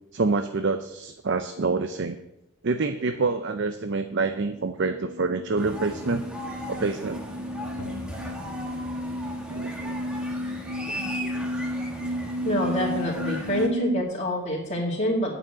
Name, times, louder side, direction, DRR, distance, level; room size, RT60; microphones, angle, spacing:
voice 1, 0.1-2.2 2.6-6.2 6.7-7.2 9.5-10.0 10.9-11.3, right 3 dB, 50° right, 9 dB, 0.5 m, -27 dB
sound 1, 4.8-14.0, left 1 dB, 90° right, 1.0 m, -33 dB
sound 2, 5.6-13.7, equal, 5° right, 1.3 m, -37 dB
sound 3, 7.8-9.7, left 1 dB, 80° left, 1.1 m, -46 dB
voice 2, 12.4-15.4, equal, 30° left, -4 dB, 2.1 m, -26 dB
8.8 x 7.0 x 8.5 m, 0.88 s
head